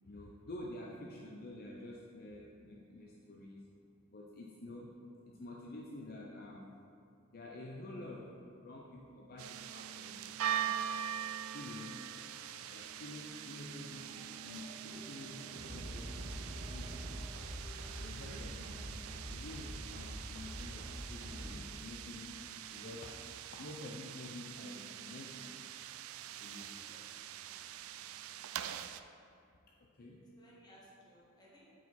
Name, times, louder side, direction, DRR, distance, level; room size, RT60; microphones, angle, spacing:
voice 1, 0.0-3.7 4.1-5.0 5.3-6.8 7.3-10.9 11.5-12.1 12.6-17.5 18.0-18.9 19.2-22.3 22.7-25.6 26.3-27.1 27.8-27.9 29.5-30.3, left 2 dB, 45° left, -2 dB, 0.5 m, -49 dB
sound 1, 9.4-29.0, right 10 dB, 85° right, 0.3 m, -43 dB
sound 2, 12.2-21.9, equal, 65° right, 1.6 m, -46 dB
voice 2, 26.8-27.3 30.3-31.7, equal, 20° left, -6 dB, 1.5 m, -61 dB
8.2 x 4.8 x 4.2 m, 2.5 s
head